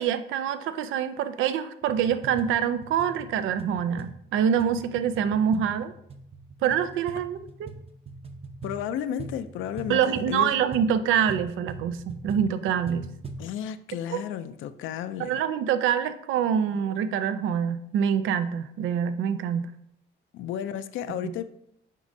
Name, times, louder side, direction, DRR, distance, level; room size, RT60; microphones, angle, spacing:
voice 1, 0.0-5.9 6.6-7.7 9.9-13.1 14.1-14.2 15.2-19.7, right 8 dB, 85° right, 0.4 m, -25 dB
sound 1, 1.8-13.5, right 3 dB, 30° right, 0.8 m, -42 dB
voice 2, 8.6-10.5 13.4-15.3 20.3-21.4, left 9 dB, 85° left, 0.4 m, -33 dB
8.2 x 5.1 x 2.7 m
cardioid pair, 90°, 20 cm